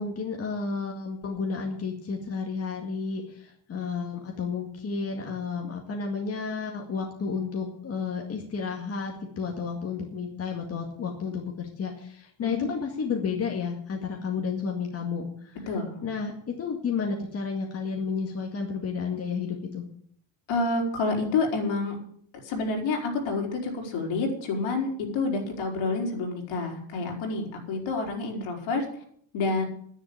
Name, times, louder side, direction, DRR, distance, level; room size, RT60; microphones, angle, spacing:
voice 1, 0.0-15.5 16.0-16.3 16.6-19.8, left 5 dB, 30° left, 1 dB, 2.0 m, -31 dB
voice 2, 15.7-16.0 20.5-22.0 22.4-28.8 29.3-29.6, left 3 dB, 70° left, 1 dB, 4.5 m, -28 dB
10.5 x 9.9 x 8.8 m, 0.62 s
cardioid pair, 145°, 48 cm